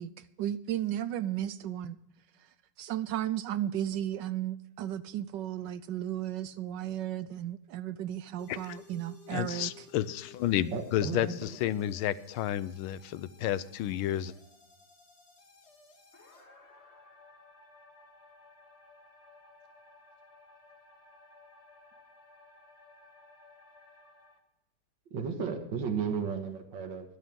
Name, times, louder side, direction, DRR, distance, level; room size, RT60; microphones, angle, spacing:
voice 1, 0.0-2.0 2.8-9.9, right 11 dB, 75° right, 14 dB, 1.0 m, -34 dB
sound 1, 8.4-24.4, left 3 dB, 30° left, 2.1 m, -56 dB
voice 2, 9.3-11.3 11.6-14.3, left 12 dB, 75° left, 16 dB, 1.5 m, -31 dB
voice 3, 10.7-11.6 25.1-27.2, right 5 dB, 60° right, 3 dB, 2.2 m, -34 dB
23.5 x 8.4 x 3.6 m, 0.86 s
omnidirectional pair, 2.4 m